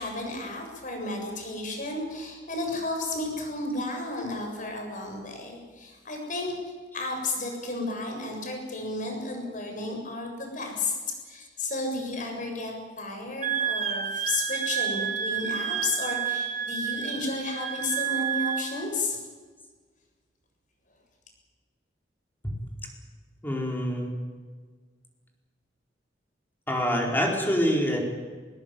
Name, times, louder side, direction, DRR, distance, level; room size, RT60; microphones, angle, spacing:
voice 1, 0.0-6.5 6.9-11.0 11.3-19.2, left 2 dB, 50° left, 2 dB, 7.4 m, -32 dB
Wind instrument woodwind instrument, 13.4-18.7, right 8 dB, 45° right, 1.9 m, -30 dB
voice 2, 23.4-24.1 26.7-28.0, equal, 10° left, 0 dB, 4.6 m, -26 dB
20.5 x 20.0 x 9.4 m, 1.5 s
head